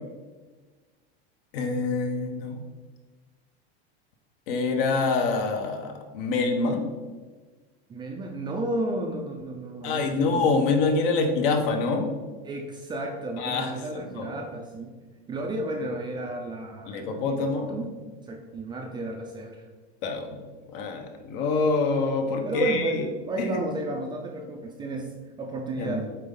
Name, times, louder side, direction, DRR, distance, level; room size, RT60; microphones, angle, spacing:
voice 1, 1.5-2.6 4.5-6.9 9.8-12.1 13.4-14.4 16.9-17.7 20.0-20.4 20.7-23.0 23.4-23.6 25.8-26.1, left 3 dB, 60° left, 5 dB, 1.1 m, -26 dB
voice 2, 7.9-10.5 12.4-14.9 15.3-17.9 18.2-19.6 22.4-26.1, right 2 dB, 15° right, 2 dB, 0.4 m, -33 dB
7.9 x 4.1 x 3.8 m, 1.4 s
supercardioid pair, 155°, 31 cm